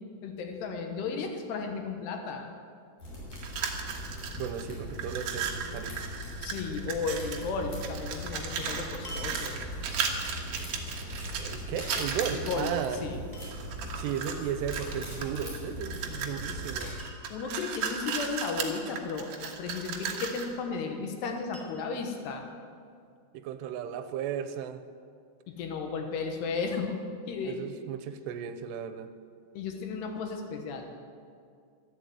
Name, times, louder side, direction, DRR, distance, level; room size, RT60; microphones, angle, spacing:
voice 1, 0.2-2.5 6.4-9.6 12.3-12.7 13.0-13.2 17.3-22.5 25.5-27.0 27.3-27.6 29.5-31.0, left 5 dB, 80° left, 3 dB, 3.3 m, -34 dB
sound 1, 3.0-16.9, equal, 35° left, 4.9 m, -40 dB
sound 2, 3.3-4.6 4.9-7.5 7.8-13.0 13.5-14.4 14.7-20.5, right 7 dB, 60° right, 2.4 m, -36 dB
voice 2, 4.3-6.1 11.4-13.1 13.9-17.0 23.3-24.8 27.3-29.1, right 8 dB, 90° right, 9 dB, 2.8 m, -35 dB
sound 3, 9.0-9.9 12.3-12.7 13.3-13.9 15.8-16.2 16.5-16.6 17.0-17.7 20.0-20.6 21.5-22.2 22.9-23.0, right 1 dB, 5° left, 1.9 m, -49 dB
12.0 x 12.0 x 8.0 m, 2.3 s
omnidirectional pair, 4.9 m